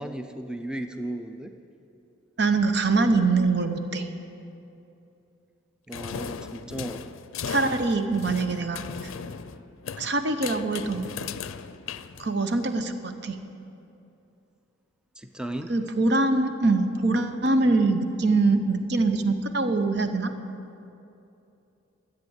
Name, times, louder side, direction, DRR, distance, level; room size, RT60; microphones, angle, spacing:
voice 1, 0.0-1.5 5.9-7.0 15.2-15.7, right 1 dB, 5° right, 7 dB, 0.4 m, -35 dB
voice 2, 2.4-4.1 7.5-8.8 10.0-11.1 12.2-13.4 15.7-20.3, right 3 dB, 55° right, 8 dB, 0.8 m, -23 dB
sound 1, 5.9-12.7, left 6 dB, 85° left, 0.5 m, -37 dB
13.5 x 8.3 x 8.1 m, 2.8 s
head